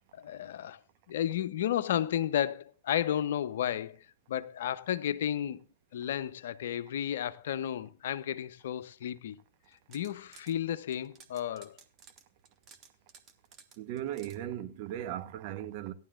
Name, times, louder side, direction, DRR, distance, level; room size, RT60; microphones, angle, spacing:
voice 1, 0.2-0.8 1.1-5.6 5.9-9.4 9.9-11.8, left 10 dB, 60° left, 0.7 m, -33 dB
sound 1, 9.6-10.5 10.9-14.4, right 6 dB, 30° right, 1.3 m, -56 dB
voice 2, 13.8-15.9, right 12 dB, 45° right, 1.0 m, -37 dB
17.0 x 11.0 x 2.5 m
figure-of-eight pair, 105°, 0 cm